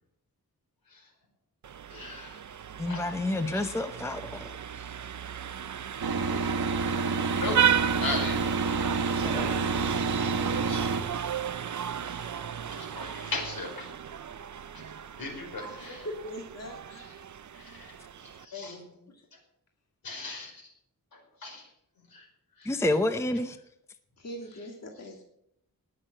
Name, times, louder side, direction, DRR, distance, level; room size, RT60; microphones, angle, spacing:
Vehicle horn car horn honking, 1.6-18.5, right 8 dB, 55° right, 0.6 m, -34 dB
voice 1, 1.9-2.4 2.9-3.6 7.0-7.6 8.0-8.4 9.2-9.3 9.7-9.8 10.5-10.8 12.0-13.9 14.7-14.8 15.2-16.0 16.9-17.1 17.5-17.9 18.4-18.8 20.0-20.7 21.1-21.7 22.1-22.3 22.6-22.8, left 3 dB, 75° left, 1 dB, 5.1 m, -39 dB
voice 2, 2.8-4.6 9.2-9.7 22.6-23.6, left 1 dB, 10° left, 8 dB, 0.6 m, -29 dB
sound 1, 6.0-11.0, right 4 dB, 85° right, 1.5 m, -29 dB
voice 3, 15.9-16.8 18.5-18.8 19.1-19.2 24.2-25.2, left 1 dB, 45° left, 1 dB, 1.9 m, -41 dB
19.5 x 6.6 x 7.6 m, 0.77 s
wide cardioid pair, 160°, 36 cm